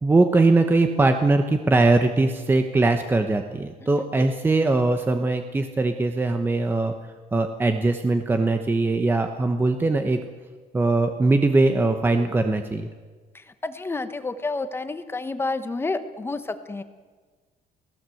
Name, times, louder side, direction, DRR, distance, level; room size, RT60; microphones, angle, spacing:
voice 1, 0.0-6.9 7.3-10.2 10.7-12.9, right 2 dB, 15° right, 6 dB, 1.1 m, -21 dB
voice 2, 13.3-16.8, left 3 dB, 15° left, 10 dB, 1.1 m, -30 dB
28.5 x 18.0 x 7.9 m, 1.4 s
cardioid pair, 175°, 16 cm